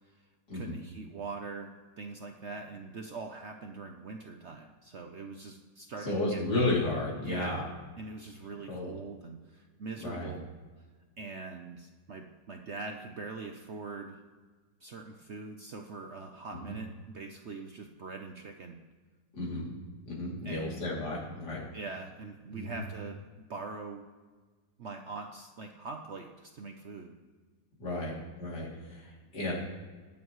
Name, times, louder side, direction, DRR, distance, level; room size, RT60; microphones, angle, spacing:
voice 1, 0.5-1.7 2.0-6.4 7.2-7.6 8.0-10.5 11.2-14.2 14.8-18.8 20.4-20.8 21.7-23.2 23.5-24.0 24.8-27.1, right 4 dB, 55° right, 4 dB, 0.8 m, -42 dB
voice 2, 6.0-7.7 8.7-8.9 10.0-10.3 16.7-16.8 19.3-19.7 20.1-21.6 22.5-22.7 27.8-29.5, left 2 dB, 70° left, -5 dB, 3.6 m, -33 dB
21.0 x 7.3 x 3.1 m, 1.4 s
omnidirectional pair, 1.8 m